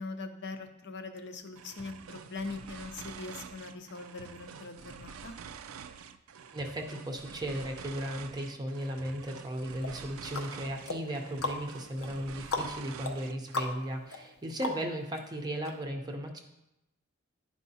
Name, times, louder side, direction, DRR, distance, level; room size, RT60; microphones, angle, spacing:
voice 1, 0.0-5.4, left 3 dB, 55° left, 7 dB, 0.7 m, -41 dB
sound 1, 1.6-13.8, right 6 dB, 85° right, 0.4 m, -47 dB
voice 2, 6.5-16.4, equal, 20° right, 3 dB, 0.6 m, -36 dB
sound 2, 9.8-15.2 15.6-15.7, left 3 dB, 85° left, 0.8 m, -38 dB
11.0 x 4.7 x 2.7 m, 0.89 s
head